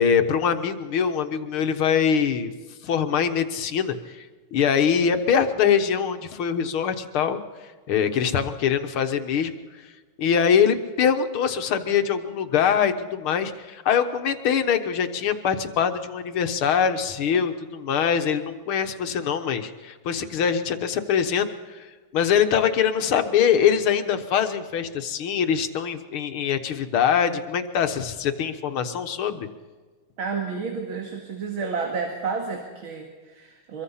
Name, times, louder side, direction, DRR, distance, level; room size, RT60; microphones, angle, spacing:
voice 1, 0.0-2.5 2.8-4.2 4.5-7.4 7.9-9.6 10.2-21.9 22.1-29.5, left 7 dB, 80° left, 8 dB, 2.1 m, -23 dB
voice 2, 30.2-33.8, right 5 dB, 70° right, 2 dB, 3.0 m, -30 dB
25.0 x 23.0 x 5.7 m, 1.4 s
omnidirectional pair, 2.3 m